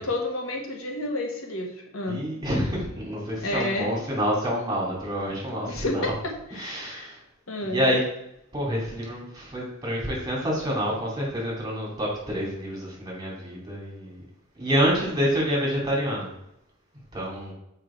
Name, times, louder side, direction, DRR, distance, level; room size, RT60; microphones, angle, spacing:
voice 1, 0.0-2.2 3.4-3.9 5.7-7.1 7.5-7.9, left 2 dB, 75° left, 1 dB, 1.5 m, -30 dB
voice 2, 2.1-6.0 6.6-7.2 7.7-8.0 8.5-14.2 14.6-16.3 17.1-17.5, equal, 20° right, -3 dB, 2.8 m, -27 dB
7.6 x 4.8 x 4.5 m, 0.80 s
head